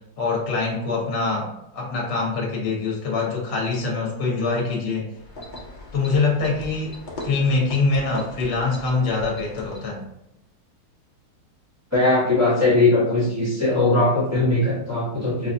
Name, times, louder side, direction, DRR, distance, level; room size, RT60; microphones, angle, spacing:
voice 1, 0.2-5.1 5.9-7.0 7.2-10.1, left 3 dB, 50° left, -2 dB, 1.2 m, -24 dB
sound 1, 5.1-10.0, left 1 dB, 65° left, 0.4 m, -39 dB
voice 2, 11.9-15.5, left 2 dB, 15° right, -8 dB, 0.5 m, -20 dB
5.1 x 2.3 x 2.6 m, 0.84 s
omnidirectional pair, 2.2 m